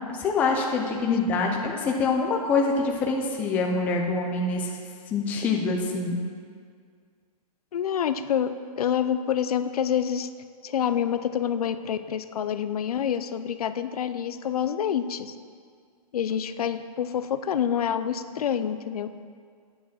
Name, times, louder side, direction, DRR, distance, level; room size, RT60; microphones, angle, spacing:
voice 1, 0.2-4.7 5.1-6.2, left 4 dB, 10° left, 1 dB, 0.4 m, -25 dB
voice 2, 7.7-8.5 8.8-10.3 10.6-15.3 16.1-19.1, left 9 dB, 70° left, 11 dB, 0.6 m, -27 dB
8.3 x 7.1 x 6.1 m, 2.1 s
hypercardioid pair, 165°, 20 cm